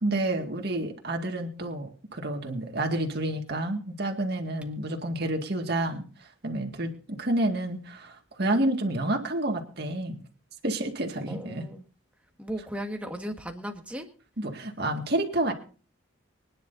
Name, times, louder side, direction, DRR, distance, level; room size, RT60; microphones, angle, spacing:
voice 1, 0.0-6.0 6.4-10.2 10.6-11.6 14.4-15.5, right 1 dB, 55° right, 3 dB, 2.1 m, -29 dB
voice 2, 11.3-11.8 12.4-14.1, equal, 5° right, 3 dB, 1.7 m, -36 dB
24.5 x 10.0 x 2.7 m, 0.39 s
head